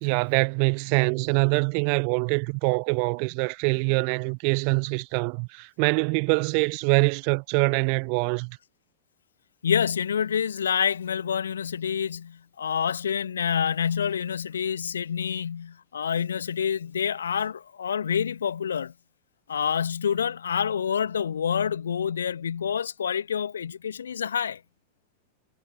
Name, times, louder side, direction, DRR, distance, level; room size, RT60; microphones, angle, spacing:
voice 1, 0.0-8.6, right 40 dB or more, 45° right, 1.5 m, -24 dB
voice 2, 9.6-18.9 19.5-24.6, left 7 dB, 70° left, 2.1 m, -27 dB
figure-of-eight pair, 90°, 0 cm